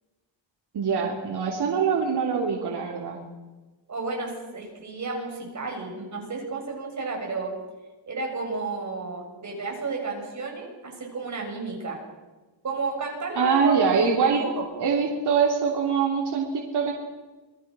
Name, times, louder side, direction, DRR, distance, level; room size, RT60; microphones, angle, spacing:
voice 1, 0.7-3.2 13.4-14.4 14.8-16.9, right 6 dB, 55° right, -1 dB, 3.6 m, -23 dB
voice 2, 3.9-7.5 8.1-12.0 12.6-14.0 14.3-14.6, right 4 dB, 35° right, 1 dB, 6.7 m, -32 dB
28.0 x 20.5 x 6.4 m, 1.2 s
wide cardioid pair, 150°, 46 cm